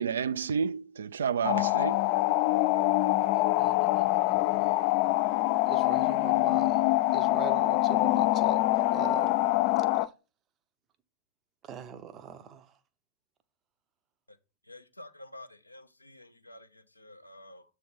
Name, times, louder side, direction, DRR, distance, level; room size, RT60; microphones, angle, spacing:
voice 1, 0.0-2.1, right 6 dB, 65° right, 0.4 m, -30 dB
sound 1, 1.4-10.1, left 18 dB, 40° left, 0.3 m, -25 dB
voice 2, 3.6-4.7 5.7-6.8 7.1-9.3 11.7-12.6, right 8 dB, 25° right, 0.7 m, -42 dB
voice 3, 14.7-16.7 17.0-17.6, left 1 dB, 85° left, 0.7 m, -49 dB
7.6 x 3.2 x 5.3 m
figure-of-eight pair, 100°, 0 cm